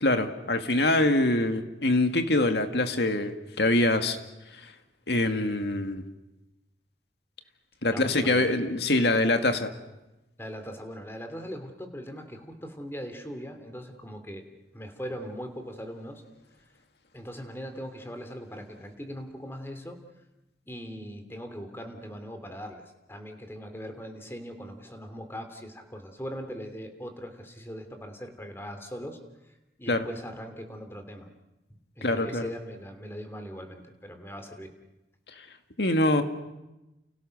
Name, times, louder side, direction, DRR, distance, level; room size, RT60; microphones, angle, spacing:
voice 1, 0.0-4.2 5.1-6.0 7.8-9.7 29.9-30.1 32.0-32.5 35.8-36.2, left 2 dB, 75° left, 7 dB, 2.2 m, -24 dB
voice 2, 7.8-8.6 10.4-14.4 14.7-16.2 17.1-20.0 20.7-31.3 31.7-34.7, equal, 15° left, 6 dB, 3.0 m, -40 dB
30.0 x 29.5 x 6.6 m, 0.99 s
head